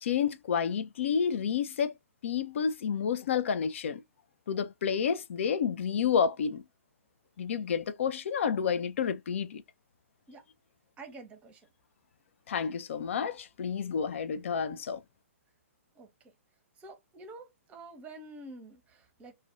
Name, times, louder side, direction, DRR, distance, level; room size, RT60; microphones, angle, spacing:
voice 1, 0.0-1.9 2.2-4.0 4.5-6.6 7.4-9.6 12.5-15.0, left 7 dB, 60° left, 0.4 m, -30 dB
voice 2, 11.0-11.7 15.9-16.1 16.8-19.3, right 2 dB, 15° right, 0.7 m, -48 dB
2.4 x 2.2 x 3.6 m
figure-of-eight pair, 125°, 8 cm